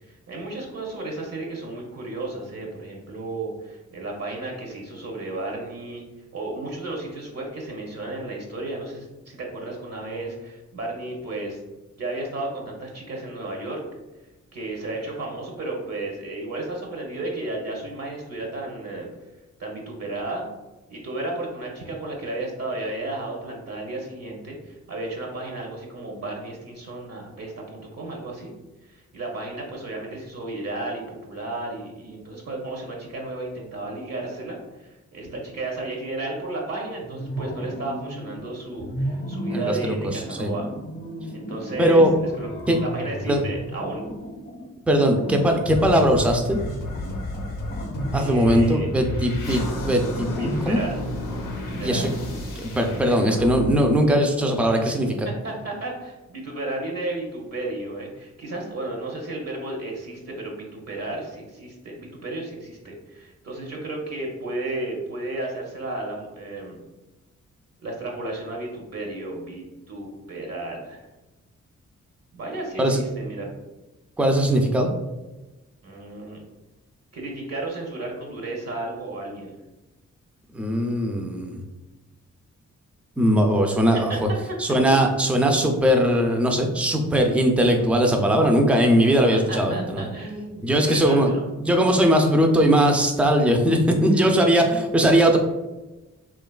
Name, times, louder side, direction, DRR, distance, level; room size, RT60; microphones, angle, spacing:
voice 1, 0.1-6.0 6.3-11.6 12.0-13.8 14.5-19.1 19.6-20.4 20.9-28.5 28.9-40.7 41.3-42.0 42.4-42.5 42.8-44.0 48.1-48.9 50.4-51.0 51.8-52.1 54.7-55.0 55.4-66.8 67.8-71.0 72.3-73.5 75.8-76.4 77.1-79.5 83.7-84.2 89.0-89.1 89.5-91.4, right 2 dB, 55° right, -1 dB, 0.7 m, -33 dB
sound 1, 37.0-38.4 38.8-52.7, equal, 40° left, 0.7 m, -34 dB
voice 2, 39.5-40.5 41.8-42.1 42.7-42.8 43.3-43.4 44.9-46.6 48.1-50.8 51.8-52.1 52.6-55.3 72.8-73.0 74.2-74.9 80.5-81.6 83.2-84.3 84.6-90.1 90.6-91.3 91.6-95.4, equal, 5° right, 3 dB, 0.4 m, -20 dB
sound 2, 45.7-55.0, left 2 dB, 90° left, 0.6 m, -33 dB
2.8 x 2.3 x 2.2 m, 1.1 s
supercardioid pair, 45°, 31 cm